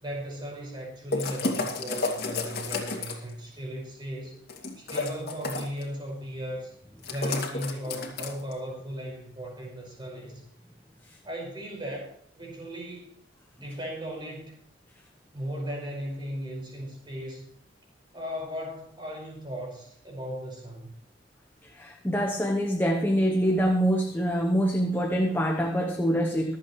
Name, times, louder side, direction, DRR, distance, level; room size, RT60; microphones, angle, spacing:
voice 1, 0.0-4.4 4.8-6.7 7.1-10.4 11.2-12.1 12.4-13.1 13.6-14.6 15.3-17.5 18.1-21.0, equal, 25° right, 0 dB, 5.3 m, -36 dB
sound 1, 1.1-3.3 4.5-5.8 7.0-8.5, left 3 dB, 55° left, 2.5 m, -31 dB
voice 2, 21.6-26.6, equal, 10° left, 3 dB, 0.9 m, -25 dB
24.5 x 8.2 x 3.2 m, 0.64 s
head